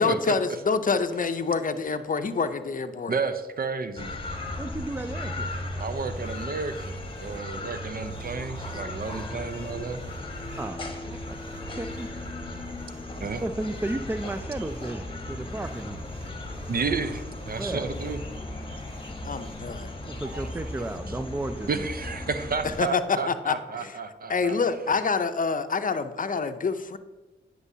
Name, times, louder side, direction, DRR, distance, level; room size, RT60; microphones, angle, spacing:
voice 1, 0.0-3.1 19.2-19.9 22.8-23.0 23.3-23.9 24.3-27.0, left 4 dB, 45° left, 10 dB, 0.6 m, -27 dB
voice 2, 3.1-4.1 5.8-10.3 13.2-13.4 16.7-18.2 20.3-20.5 20.8-20.9 21.7-24.6, right 4 dB, 50° right, 10 dB, 0.7 m, -32 dB
sound 1, 4.0-22.8, left 1 dB, 25° left, 1.2 m, -36 dB
voice 3, 4.6-5.5 10.6-11.2 11.8-12.1 13.4-16.0 17.6-17.9 20.1-21.9, right 2 dB, 10° right, 9 dB, 0.4 m, -33 dB
sound 2, 6.0-21.0, equal, 35° right, 1.9 m, -49 dB
9.6 x 6.1 x 2.7 m, 1.2 s
cardioid pair, 50°, 19 cm